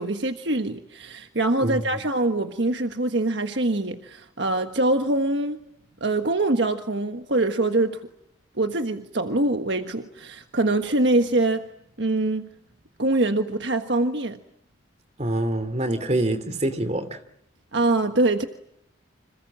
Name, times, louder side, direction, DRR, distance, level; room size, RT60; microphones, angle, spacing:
voice 1, 0.0-5.6 6.0-8.0 8.6-11.7 12.0-12.5 13.0-14.4 17.7-18.5, right 2 dB, 60° right, 1.4 m, -24 dB
voice 2, 15.2-17.2, right 1 dB, 35° right, 2.8 m, -25 dB
29.5 x 27.0 x 7.5 m
head